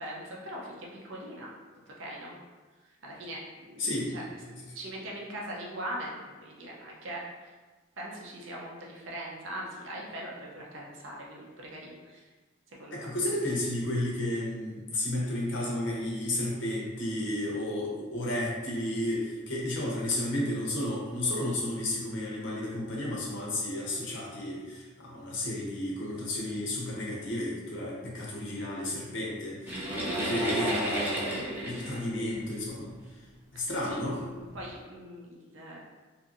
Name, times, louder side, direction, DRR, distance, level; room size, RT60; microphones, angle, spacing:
voice 1, 0.0-1.5 1.9-2.4 3.0-4.4 4.7-7.2 8.0-12.2 12.7-13.1 30.0-30.1 33.5-35.8, right 1 dB, 70° right, -3 dB, 0.6 m, -41 dB
voice 2, 3.8-4.3 12.9-33.0 33.5-34.2, left 1 dB, 65° left, -4 dB, 0.8 m, -32 dB
sound 1, 29.7-33.0 33.8-33.9 34.5-34.7, right 1 dB, 10° right, 0.5 m, -32 dB
2.8 x 2.6 x 2.5 m, 1.3 s
head